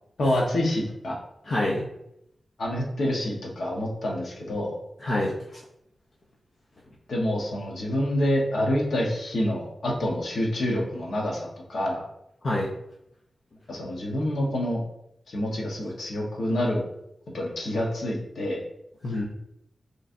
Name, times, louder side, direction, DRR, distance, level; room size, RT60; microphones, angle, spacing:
voice 1, 0.2-1.2 2.6-4.8 7.1-12.0 13.7-14.8 15.3-16.8 17.3-18.6, left 1 dB, 70° left, -1 dB, 1.0 m, -27 dB
voice 2, 1.4-1.8 5.0-5.6 12.4-12.7 19.0-19.2, left 1 dB, 55° left, -4 dB, 0.6 m, -26 dB
5.1 x 3.1 x 2.6 m, 0.80 s
wide cardioid pair, 130°, 0 cm